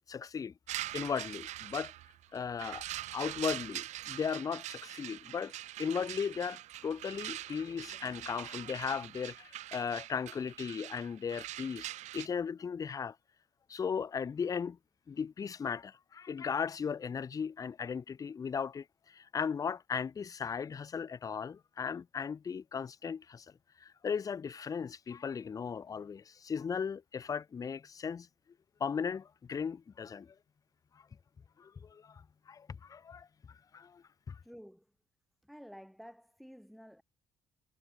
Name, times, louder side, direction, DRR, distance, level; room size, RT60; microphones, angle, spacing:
voice 1, 0.1-0.5 0.9-1.9 2.3-2.8 3.1-5.5 5.8-11.9 12.1-13.2 13.7-14.8 15.1-23.5 23.8-28.3 28.8-30.3 31.6-33.3 33.7-34.4, left 6 dB, 30° left, 0.4 m, -37 dB
sound 1, 0.7-12.3, right 14 dB, 70° right, 0.7 m, -43 dB
voice 2, 34.4-34.8 35.4-37.0, equal, ahead, 2.9 m, -52 dB
supercardioid pair, 60°, 12 cm